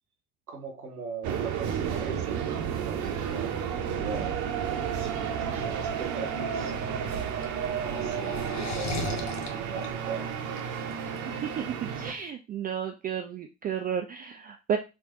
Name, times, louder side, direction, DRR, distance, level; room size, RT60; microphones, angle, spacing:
voice 1, 0.5-4.3 4.7-6.7 7.8-9.3 9.5-10.4, right 5 dB, 85° right, 5 dB, 0.8 m, -40 dB
sound 1, 1.2-12.1, right 7 dB, 45° right, 0.7 m, -32 dB
sound 2, 7.0-12.2, left 2 dB, 40° left, 1.0 m, -37 dB
voice 2, 11.3-14.8, right 8 dB, 25° right, 4 dB, 0.3 m, -32 dB
3.5 x 3.1 x 3.0 m, 0.28 s
figure-of-eight pair, 60°, 43 cm